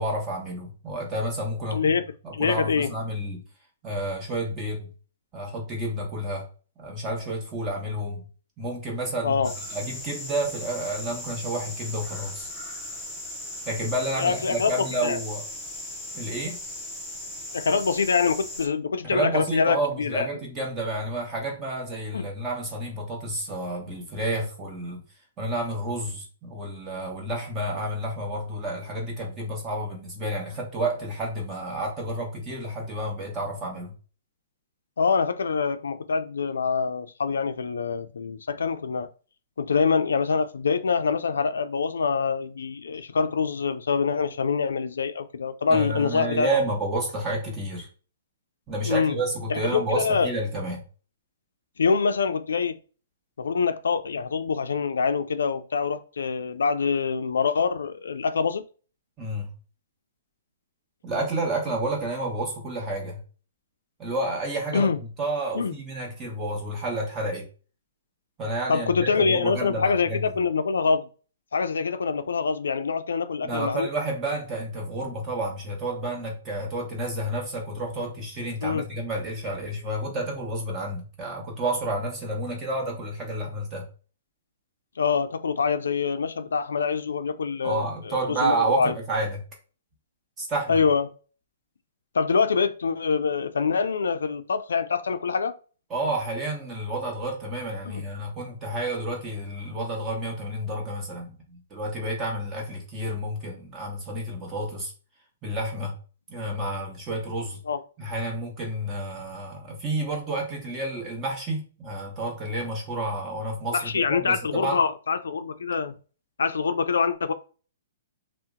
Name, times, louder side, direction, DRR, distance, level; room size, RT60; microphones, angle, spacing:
voice 1, 0.0-1.9 2.2-3.4 3.8-4.9 5.3-6.5 6.8-8.2 8.6-12.5 13.6-15.4 16.1-16.6 19.0-25.0 25.4-33.9 45.7-47.9 48.7-50.8 59.2-59.5 61.0-63.2 64.0-67.5 68.4-70.3 73.4-83.9 87.6-89.4 90.4-90.8 95.9-104.9 105.4-106.0 106.3-107.6 108.0-114.8, right 1 dB, 20° right, 1.1 m, -30 dB
voice 2, 1.7-2.0 2.3-2.9 9.2-9.5 14.2-14.7 15.0-15.2 17.5-20.3 22.1-22.3 35.0-39.1 39.6-46.5 48.8-49.2 49.5-50.3 51.8-52.8 53.4-58.6 64.7-65.0 65.5-65.7 68.7-71.1 71.5-73.9 78.6-78.9 85.0-88.9 90.7-91.1 92.1-95.5 97.8-98.0 107.7-107.8 113.7-115.9 116.4-117.3, left 5 dB, 90° left, 0.3 m, -25 dB
sound 1, 9.4-18.7, left 1 dB, ahead, 0.7 m, -38 dB
2.7 x 2.0 x 3.6 m
hypercardioid pair, 145°, 0 cm